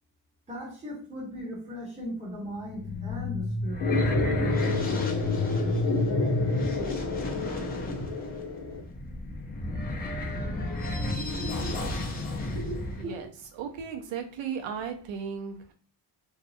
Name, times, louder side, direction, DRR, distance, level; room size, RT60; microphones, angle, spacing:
voice 1, 0.5-3.9 8.1-8.2 13.0-13.1, equal, 15° right, -5 dB, 1.0 m, -38 dB
sound 1, 2.5-13.0, left 2 dB, 20° left, 0.5 m, -30 dB
sound 2, 3.8-8.8, left 4 dB, 70° left, 0.7 m, -31 dB
voice 2, 12.5-13.3 13.6-15.7, right 6 dB, 85° right, 5 dB, 0.6 m, -36 dB
2.7 x 2.3 x 2.5 m, 0.41 s
cardioid pair, 125°, 44 cm